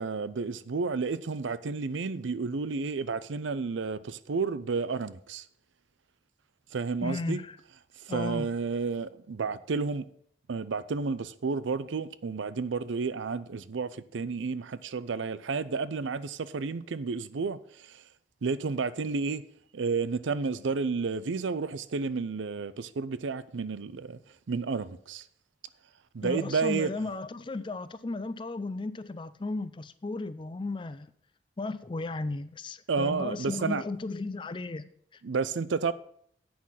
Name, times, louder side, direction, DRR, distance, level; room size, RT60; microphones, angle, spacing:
voice 1, 0.0-5.4 6.7-7.4 8.0-10.1 10.5-18.0 18.4-19.4 19.7-24.2 24.5-25.2 26.1-26.9 32.9-33.8 35.2-35.9, right 4 dB, 90° right, 0.5 m, -31 dB
voice 2, 7.0-7.6 8.1-8.5 26.2-31.1 31.6-35.2, left 3 dB, 25° left, 0.4 m, -35 dB
8.6 x 5.8 x 7.3 m
head